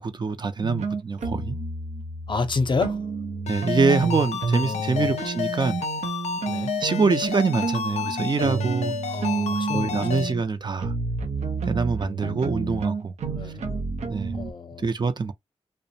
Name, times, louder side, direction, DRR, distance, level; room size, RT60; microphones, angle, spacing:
voice 1, 0.0-1.6 3.5-5.8 6.8-9.0 9.7-10.9 11.6-13.1 14.1-14.4 14.8-15.3, right 4 dB, 40° right, 0.5 m, -25 dB
sound 1, 0.6-4.7 5.0-14.5, right 4 dB, 85° right, 0.6 m, -30 dB
voice 2, 2.3-3.0 4.6-5.2 6.5-6.7 9.1-10.2 13.3-13.6 14.3-14.9, left 4 dB, 45° left, 0.6 m, -29 dB
Ringtone, 3.5-10.3, left 7 dB, 90° left, 0.4 m, -31 dB
2.4 x 2.1 x 2.7 m
cardioid pair, 55°, 11 cm